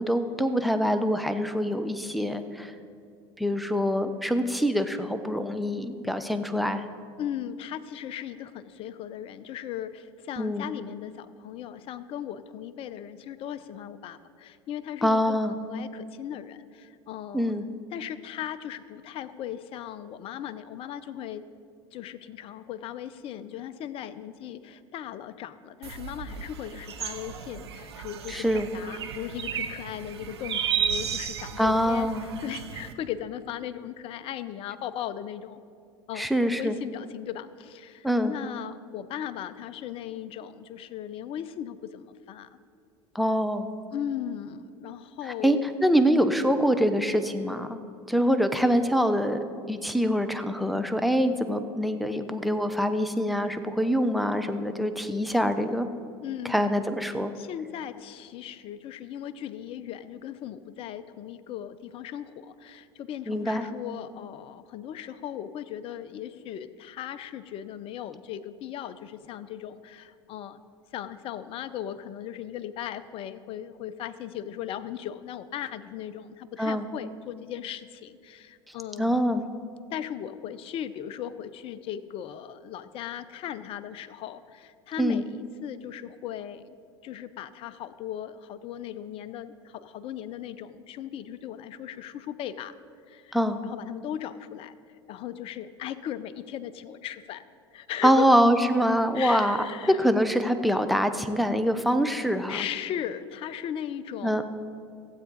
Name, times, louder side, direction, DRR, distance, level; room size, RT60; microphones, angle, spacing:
voice 1, 0.0-2.7 3.4-6.8 10.4-10.6 15.0-15.6 17.3-17.6 28.3-28.7 31.6-32.3 36.2-36.7 38.0-38.3 43.1-43.7 45.4-47.8 48.1-55.9 56.4-57.3 63.3-63.6 76.6-76.9 79.0-79.4 85.0-85.2 93.3-93.6 98.0-99.6 99.9-102.6 104.2-104.4, equal, ahead, 9 dB, 0.7 m, -24 dB
voice 2, 7.2-17.6 17.9-21.4 21.9-35.6 36.1-36.3 36.6-42.5 43.9-45.7 46.0-46.1 56.2-56.7 57.4-70.6 70.9-79.4 79.9-86.7 87.0-92.7 93.1-94.8 95.1-97.4 97.7-98.3 99.1-100.0 102.5-104.4, left 10 dB, 45° left, 13 dB, 0.6 m, -37 dB
sound 1, 25.8-32.9, right 8 dB, 80° right, 0.7 m, -34 dB
15.0 x 8.0 x 4.0 m, 2.3 s
hypercardioid pair, 75°, 13 cm